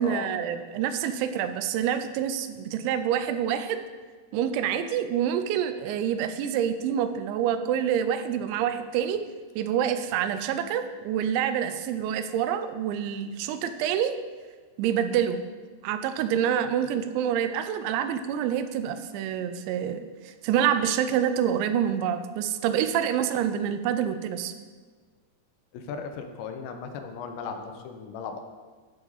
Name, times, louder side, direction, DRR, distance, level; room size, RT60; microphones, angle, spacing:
voice 1, 0.0-3.8 4.3-9.2 9.6-14.1 14.8-15.4 15.8-20.1 20.4-24.5, right 9 dB, 90° right, 10 dB, 2.9 m, -27 dB
voice 2, 25.7-28.4, left 6 dB, 80° left, 6 dB, 2.9 m, -36 dB
14.0 x 4.7 x 3.9 m, 1.4 s
omnidirectional pair, 5.1 m